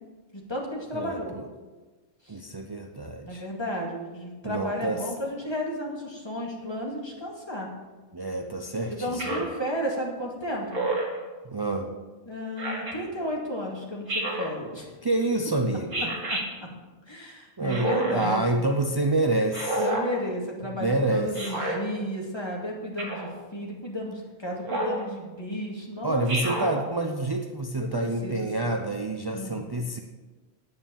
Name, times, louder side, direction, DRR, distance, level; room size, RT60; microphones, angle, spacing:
voice 1, 0.3-1.3 2.2-2.3 3.2-7.7 8.9-10.9 12.3-14.9 16.3-16.4 17.1-18.6 19.8-26.6 27.8-28.7 29.3-29.6, equal, 20° left, -2 dB, 2.4 m, -33 dB
voice 2, 0.9-1.5 2.3-3.4 4.4-5.0 8.1-9.5 11.4-11.9 15.0-16.1 17.2-19.8 20.8-21.3 26.0-30.0, right 2 dB, 35° right, 3 dB, 0.4 m, -28 dB
Speech synthesizer, 9.2-9.6 10.7-11.2 12.6-12.9 14.1-14.6 15.9-16.4 17.7-18.3 19.5-20.1 21.4-21.8 23.0-23.3 24.7-25.0 26.3-26.8, right 2 dB, 85° right, 2.7 m, -29 dB
9.6 x 9.2 x 7.2 m, 1.3 s
omnidirectional pair, 1.5 m